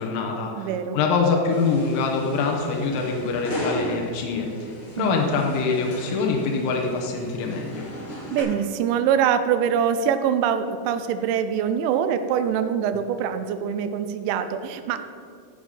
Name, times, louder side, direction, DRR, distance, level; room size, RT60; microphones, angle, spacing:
voice 1, 0.0-7.9, left 4 dB, 90° left, 1 dB, 3.3 m, -24 dB
voice 2, 0.6-1.0 5.0-5.3 8.3-15.0, right 8 dB, 85° right, 10 dB, 2.8 m, -24 dB
sound 1, 1.5-8.4, left 1 dB, 70° left, 1.2 m, -36 dB
14.0 x 5.0 x 5.4 m, 2.3 s
omnidirectional pair, 5.3 m